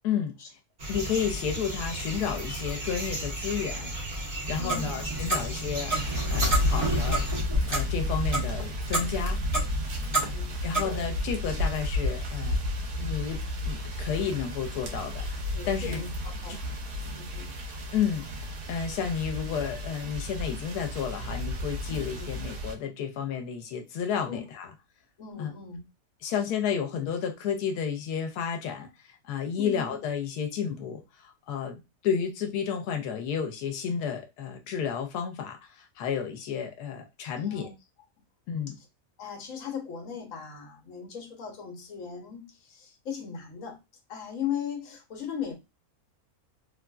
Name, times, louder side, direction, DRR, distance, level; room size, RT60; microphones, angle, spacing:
voice 1, 0.0-0.4 0.9-4.0 4.4-7.3 7.7-9.4 10.6-12.6 13.0-13.4 13.7-16.0 17.9-18.3 18.7-24.7 25.4-25.5 26.2-37.7 38.5-38.7, left 7 dB, 90° left, 1.1 m, -31 dB
sound 1, 0.8-7.4, right 1 dB, 45° right, 0.7 m, -34 dB
Clock, 4.4-10.9, right 1 dB, 20° right, 1.1 m, -31 dB
voice 2, 4.6-5.0 10.1-11.0 15.5-17.6 21.9-22.3 24.3-24.4 25.2-25.8 26.3-26.4 29.6-29.8 37.4-37.7 38.8-38.9 39.2-43.8 44.1-45.5, left 7 dB, 65° left, 1.2 m, -38 dB
sound 2, 5.9-22.7, left 1 dB, 80° right, 1.3 m, -32 dB
3.3 x 2.4 x 2.2 m
omnidirectional pair, 1.6 m